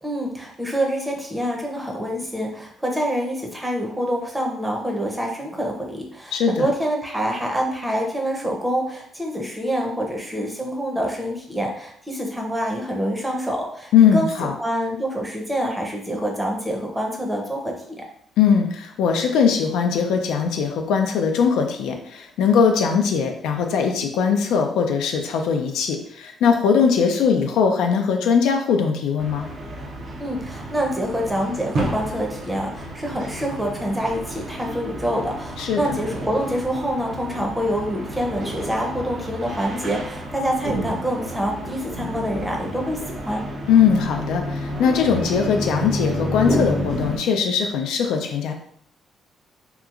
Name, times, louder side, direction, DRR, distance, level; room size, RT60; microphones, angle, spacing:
voice 1, 0.0-18.1 30.2-43.5, equal, 10° right, 0 dB, 0.6 m, -26 dB
voice 2, 6.3-6.7 13.9-14.5 18.4-29.5 35.6-36.0 43.7-48.5, left 6 dB, 90° left, 4 dB, 0.3 m, -20 dB
sound 1, 29.2-47.2, equal, 55° right, 0.6 m, -30 dB
2.8 x 2.4 x 2.4 m, 0.65 s
cardioid pair, 90°, 0 cm